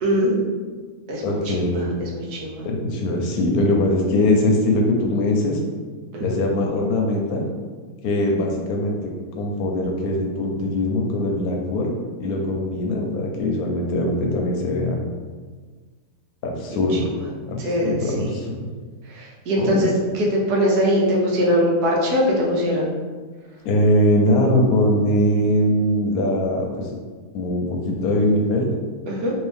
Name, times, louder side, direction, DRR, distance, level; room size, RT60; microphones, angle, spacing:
voice 1, 0.0-0.4 1.1-1.5 2.0-2.7 6.1-6.4 17.6-18.3 19.1-19.9 20.1-22.9 29.1-29.3, equal, 85° right, -3 dB, 1.3 m, -21 dB
voice 2, 1.2-2.0 2.6-5.6 6.2-7.4 8.0-9.0 9.3-11.9 12.2-15.0 16.4-17.1 17.5-18.5 19.6-19.8 23.6-26.9 27.3-28.7, left 1 dB, 75° left, 0 dB, 1.0 m, -21 dB
2.9 x 2.7 x 3.3 m, 1.5 s
omnidirectional pair, 1.6 m